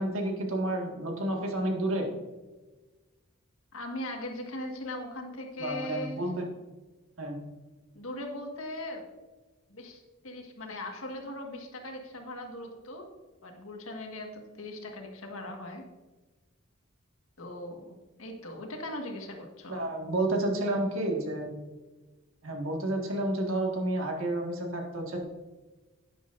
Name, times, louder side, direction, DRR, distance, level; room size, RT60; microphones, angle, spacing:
voice 1, 0.0-2.1 5.6-6.5 7.2-7.4 19.7-21.5 22.4-25.2, right 1 dB, 75° right, 1 dB, 1.8 m, -30 dB
voice 2, 3.7-6.3 7.9-9.0 9.7-13.1 13.4-15.8 17.4-19.8, left 1 dB, 80° left, 2 dB, 1.7 m, -39 dB
10.5 x 9.8 x 2.6 m, 1.2 s
head